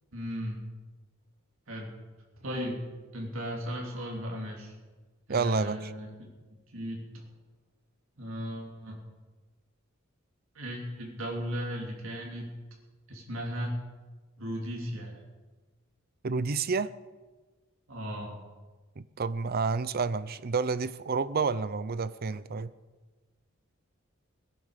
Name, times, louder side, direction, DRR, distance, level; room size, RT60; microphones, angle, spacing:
voice 1, 0.1-0.6 1.7-1.9 2.4-2.8 3.1-4.7 5.3-6.1 6.7-7.2 8.2-9.0 10.6-12.5 13.1-13.7 14.4-15.2 17.9-18.4, equal, 70° right, -1 dB, 3.4 m, -36 dB
voice 2, 5.3-5.9 16.2-16.9 19.0-22.7, right 4 dB, 45° right, 16 dB, 0.6 m, -29 dB
17.5 x 11.0 x 6.7 m, 1.3 s
head